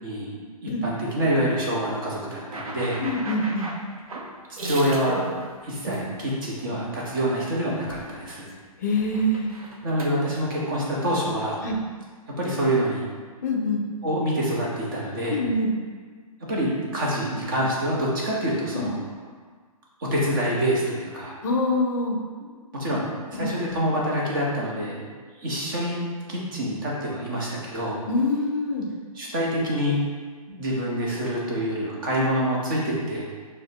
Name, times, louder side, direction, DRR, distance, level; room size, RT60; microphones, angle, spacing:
voice 1, 0.0-3.0 4.6-5.3 5.7-8.5 9.8-11.6 12.4-13.1 14.0-15.4 16.5-19.0 20.0-21.3 22.7-25.1 25.4-26.0 26.3-28.0 29.1-30.0 30.5-33.4, equal, 35° right, -4 dB, 0.9 m, -26 dB
sound 1, 2.5-6.1 6.6-6.8 7.2-7.5 7.7-8.5 8.8-10.1, right 2 dB, 70° right, 0.8 m, -36 dB
voice 2, 3.0-3.7 8.8-9.6 11.6-11.8 13.4-13.8 15.3-15.7 18.7-18.9 21.4-22.2 23.3-23.5 28.1-28.9, left 1 dB, 30° left, 0 dB, 0.4 m, -25 dB
6.1 x 2.1 x 2.8 m, 1.5 s
hypercardioid pair, 165°, 19 cm